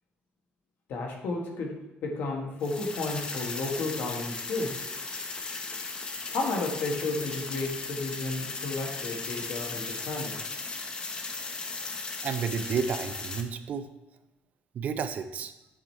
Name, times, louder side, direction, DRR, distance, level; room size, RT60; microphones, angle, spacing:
voice 1, 0.9-4.7 6.3-10.4, left 3 dB, 65° left, 1 dB, 1.5 m, -32 dB
sound 1, 2.6-13.4, left 3 dB, 25° left, 0.7 m, -36 dB
voice 2, 12.2-13.9 14.7-15.5, right 6 dB, 45° right, 10 dB, 0.5 m, -31 dB
7.8 x 4.9 x 4.4 m, 1.0 s
cardioid pair, 160°, 4 cm